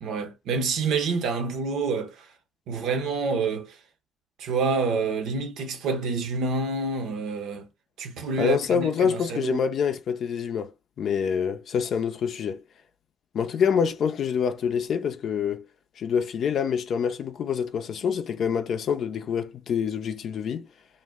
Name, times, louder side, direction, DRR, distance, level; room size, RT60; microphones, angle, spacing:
voice 1, 0.0-2.3 2.7-3.8 4.4-7.7 8.0-9.7, right 4 dB, 70° right, 0.6 m, -28 dB
voice 2, 8.4-10.7 11.0-12.6 13.3-15.7 16.0-20.7, left 7 dB, 60° left, 0.5 m, -26 dB
2.6 x 2.1 x 3.5 m
hypercardioid pair, 50°, 0 cm